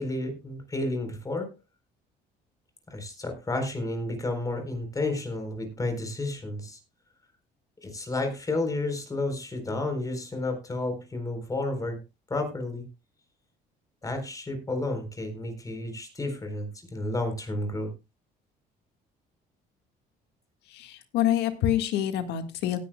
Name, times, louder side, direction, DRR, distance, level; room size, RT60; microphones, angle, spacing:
voice 1, 0.0-1.5 2.9-6.8 7.8-12.0 12.3-12.9 14.0-17.9, left 2 dB, 20° left, 6 dB, 4.0 m, -31 dB
voice 2, 20.7-22.8, left 11 dB, 85° left, 8 dB, 1.7 m, -26 dB
18.0 x 10.0 x 2.3 m, 0.25 s
cardioid pair, 110°, 17 cm